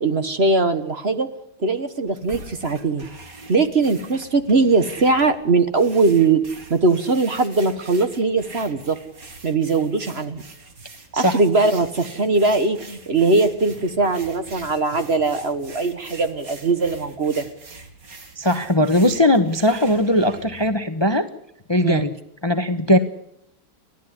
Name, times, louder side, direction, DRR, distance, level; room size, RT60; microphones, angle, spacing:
voice 1, 0.0-1.3 1.6-3.1 3.5-6.4 6.7-9.0 9.4-10.4 11.1-17.5 21.8-22.1, right 3 dB, 40° right, 10 dB, 1.5 m, -20 dB
sound 1, 2.1-20.7, right 3 dB, 55° right, 2.9 m, -43 dB
voice 2, 18.4-21.3 21.7-22.1 22.4-23.0, left 1 dB, 20° left, 9 dB, 1.0 m, -19 dB
30.0 x 11.5 x 9.9 m, 0.74 s
omnidirectional pair, 1.8 m